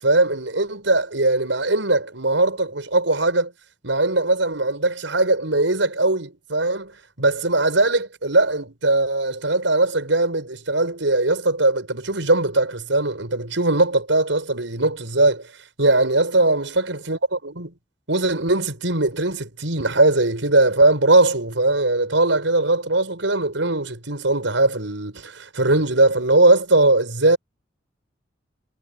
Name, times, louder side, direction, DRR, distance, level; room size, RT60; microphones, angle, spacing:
voice 1, 0.0-3.5 3.8-6.9 7.2-15.5 15.8-17.7 18.1-27.4, right 2 dB, 85° right, 5.7 m, -20 dB
head